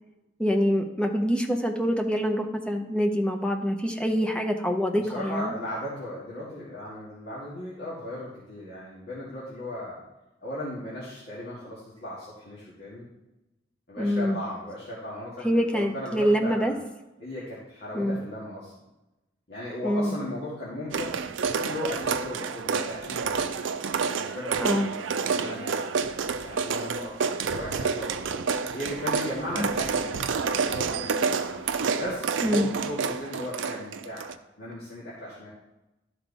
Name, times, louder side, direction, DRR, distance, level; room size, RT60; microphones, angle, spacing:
voice 1, 0.4-5.5 14.0-14.4 15.4-16.7 17.9-18.2 19.8-20.2 24.6-24.9 29.6-29.7 32.4-32.7, equal, 5° left, 3 dB, 0.7 m, -25 dB
voice 2, 5.1-10.0 10.4-13.1 13.9-16.8 17.2-18.7 19.5-23.5 24.1-25.9 26.4-28.3 28.7-31.5 32.0-34.3 34.6-35.5, left 1 dB, 55° left, -8 dB, 1.9 m, -36 dB
sound 1, 20.9-34.3, right 5 dB, 80° right, 0.5 m, -29 dB
11.5 x 4.6 x 4.1 m, 0.99 s
head